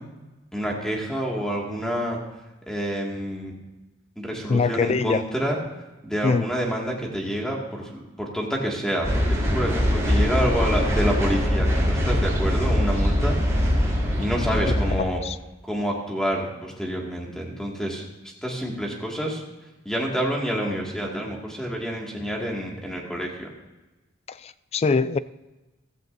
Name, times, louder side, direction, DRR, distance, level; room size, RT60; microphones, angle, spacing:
voice 1, 0.5-2.2 2.7-3.5 4.2-5.6 6.0-13.7 14.2-15.2 15.6-18.0 18.4-19.4 19.8-23.5, equal, 5° left, 2.0 m, -28 dB
voice 2, 4.5-5.2 6.2-6.5 15.2-15.3 24.4-25.2, left 4 dB, 30° left, 0.3 m, -22 dB
sound 1, 9.0-14.9, equal, 15° right, 3.4 m, -22 dB
15.0 x 14.0 x 2.6 m
head